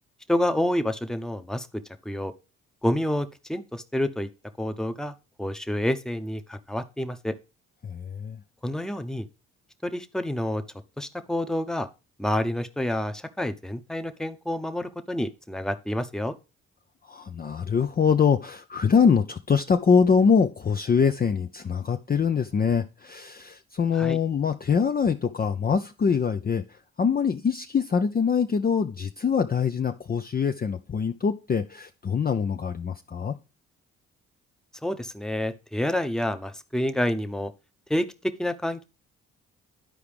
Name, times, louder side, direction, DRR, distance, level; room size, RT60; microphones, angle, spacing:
voice 1, 0.3-1.7 2.0-2.3 2.8-4.3 4.6-5.1 5.4-7.3 8.6-9.3 9.8-10.6 11.0-11.9 12.2-16.3 23.9-24.2 34.8-37.5 37.9-38.0 38.4-38.8, left 1 dB, ahead, 8 dB, 0.9 m, -28 dB
voice 2, 7.8-8.4 17.1-26.6 27.0-33.3, left 6 dB, 25° left, 6 dB, 0.5 m, -24 dB
11.5 x 4.7 x 3.4 m, 0.30 s
hypercardioid pair, 50°, 34 cm